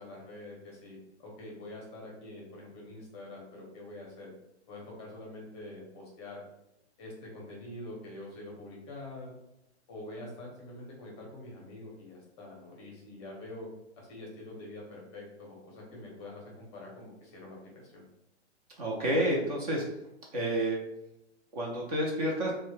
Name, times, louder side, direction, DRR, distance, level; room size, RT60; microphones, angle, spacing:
voice 1, 0.0-4.3 4.7-6.4 7.0-9.3 9.9-13.7 14.0-18.0, left 1 dB, 25° left, -2 dB, 0.7 m, -45 dB
voice 2, 18.8-19.8 20.3-20.8 21.5-22.5, right 1 dB, 35° right, -2 dB, 0.5 m, -29 dB
2.6 x 2.1 x 3.1 m, 0.86 s
hypercardioid pair, 135°, 34 cm